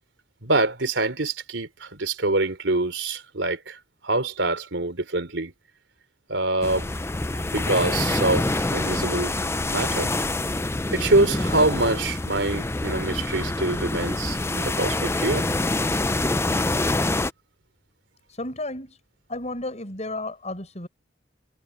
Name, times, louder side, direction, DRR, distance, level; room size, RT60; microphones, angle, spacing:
voice 1, 0.4-3.8 4.0-5.5 6.3-6.9 7.3-9.3 9.7-10.1 10.9-15.5, right 2 dB, 85° right, 3.6 m, -25 dB
sound 1, 6.6-17.3, left 2 dB, 15° left, 0.6 m, -26 dB
voice 2, 18.3-19.0 19.3-20.9, left 2 dB, 40° left, 7.6 m, -33 dB
head